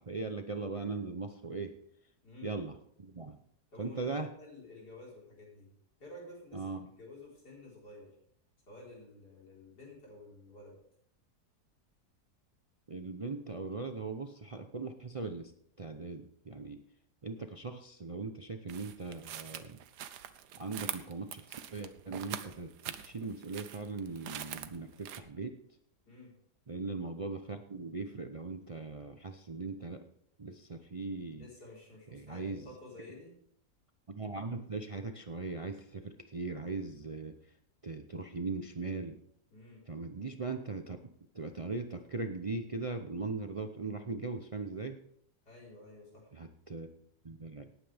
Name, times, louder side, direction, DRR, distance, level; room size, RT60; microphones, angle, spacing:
voice 1, 0.0-1.7 2.4-3.4 3.8-4.3 6.5-6.9 12.9-15.5 15.8-16.8 17.2-19.8 20.6-25.6 26.7-30.0 30.4-31.5 32.1-32.7 34.1-37.4 37.8-39.2 39.9-41.0 41.3-45.0 46.3-46.9 47.2-47.7, right 3 dB, 60° right, 6 dB, 0.3 m, -39 dB
voice 2, 2.2-2.5 3.7-5.7 6.0-8.1 8.7-10.8 26.1-26.3 31.3-33.3 39.5-39.8 45.4-46.3, left 2 dB, 85° left, -4 dB, 5.0 m, -51 dB
sound 1, 18.7-25.2, right 10 dB, 85° right, 1.4 m, -43 dB
18.0 x 9.2 x 3.5 m, 0.69 s
omnidirectional pair, 1.7 m